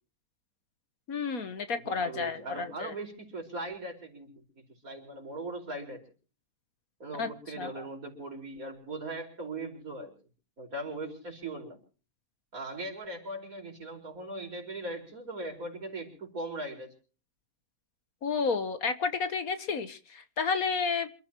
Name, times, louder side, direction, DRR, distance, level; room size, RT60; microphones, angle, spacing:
voice 1, 1.1-2.9 7.2-7.3 7.6-7.8 18.2-21.1, left 5 dB, 60° left, 10 dB, 1.6 m, -31 dB
voice 2, 1.8-6.1 7.0-10.1 10.6-11.8 12.5-16.9, right 2 dB, 55° right, 1 dB, 5.3 m, -39 dB
28.0 x 13.0 x 3.0 m, 0.40 s
omnidirectional pair, 1.7 m